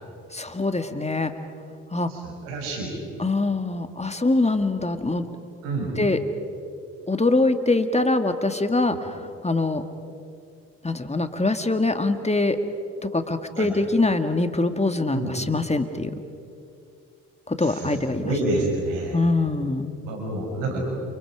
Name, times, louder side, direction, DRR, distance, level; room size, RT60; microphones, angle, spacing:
voice 1, 0.3-1.3 1.9-2.1 3.2-5.3 6.0-6.2 7.1-9.8 10.8-12.6 13.0-16.2 17.5-18.3 19.1-19.9, left 2 dB, 15° left, 7 dB, 2.1 m, -23 dB
voice 2, 2.1-2.9 5.6-5.9 8.9-9.0 13.6-13.7 15.1-15.3 17.8-17.9 18.2-19.2 20.0-20.8, right 2 dB, 90° right, 1 dB, 6.0 m, -28 dB
30.0 x 29.5 x 4.9 m, 2.5 s
hypercardioid pair, 50°, 38 cm